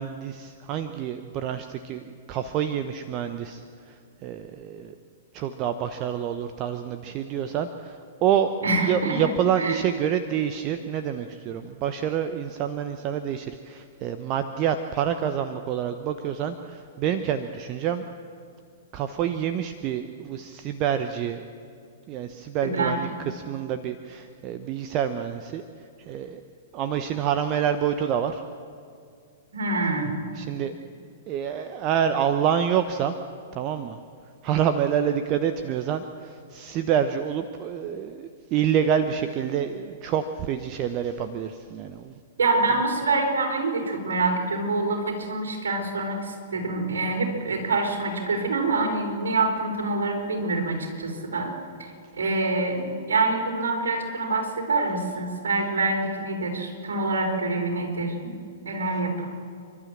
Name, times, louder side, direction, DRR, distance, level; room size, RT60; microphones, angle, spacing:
voice 1, 0.0-4.9 5.3-8.5 8.8-18.0 18.9-21.5 22.1-26.4 26.7-28.4 30.3-30.7 31.3-33.1 33.5-34.0 34.4-42.2 58.9-59.0, right 9 dB, 35° right, 9 dB, 0.9 m, -27 dB
voice 2, 8.6-9.2 9.6-9.8 22.6-23.0 29.5-30.2 42.4-51.5 51.8-58.3 58.6-59.3, right 3 dB, 70° right, 1 dB, 4.6 m, -26 dB
29.5 x 12.5 x 7.5 m, 2.2 s
figure-of-eight pair, 105°, 0 cm